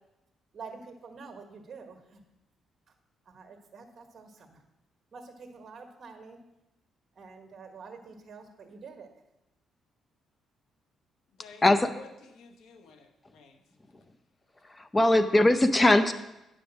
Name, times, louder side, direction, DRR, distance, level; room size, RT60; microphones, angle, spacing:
voice 1, 0.5-2.2 3.3-4.6 5.1-6.4 7.1-9.1, right 4 dB, 50° right, 5 dB, 1.5 m, -47 dB
voice 2, 11.4-13.6, left 4 dB, 80° left, 5 dB, 1.3 m, -52 dB
voice 3, 14.6-16.1, left 1 dB, 20° left, 10 dB, 0.7 m, -21 dB
9.8 x 5.4 x 6.3 m, 0.93 s
cardioid pair, 90°, 0 cm